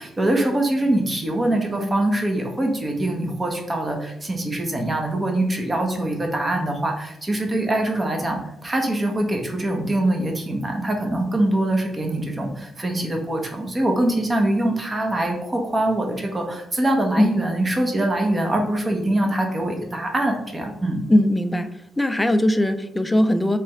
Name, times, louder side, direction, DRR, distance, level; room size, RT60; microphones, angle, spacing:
voice 1, 0.0-21.0, right 1 dB, 25° right, 2 dB, 1.1 m, -23 dB
voice 2, 21.1-21.7 22.0-23.6, left 1 dB, 10° left, 10 dB, 0.4 m, -19 dB
3.3 x 3.3 x 4.5 m, 0.80 s
supercardioid pair, 60°, 0 cm